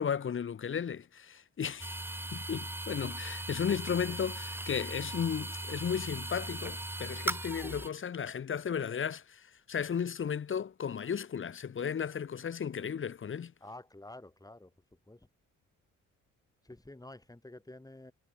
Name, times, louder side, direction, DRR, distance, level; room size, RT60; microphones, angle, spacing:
voice 1, 0.0-2.0 2.3-13.5, left 7 dB, 40° left, 1.0 m, -35 dB
sound 1, 1.8-7.9, right 1 dB, 5° right, 1.1 m, -38 dB
voice 2, 13.6-14.7 15.1-15.3 16.6-18.1, left 1 dB, 10° left, 7.0 m, -49 dB
supercardioid pair, 70°, 32 cm